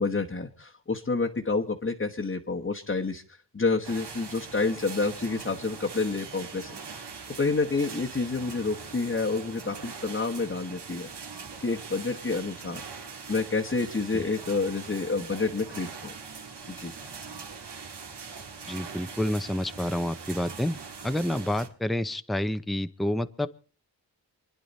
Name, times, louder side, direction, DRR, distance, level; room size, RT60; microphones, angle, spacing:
voice 1, 0.0-3.2 3.5-7.1 7.4-11.1 11.6-12.8 13.3-16.1 16.7-16.9, left 3 dB, 30° left, 1 dB, 1.2 m, -29 dB
sound 1, 3.8-21.7, right 5 dB, 70° right, 2.1 m, -42 dB
voice 2, 18.7-20.8 21.0-23.5, left 1 dB, ahead, 10 dB, 0.7 m, -29 dB
28.0 x 10.5 x 4.1 m, 0.39 s
wide cardioid pair, 100°, 43 cm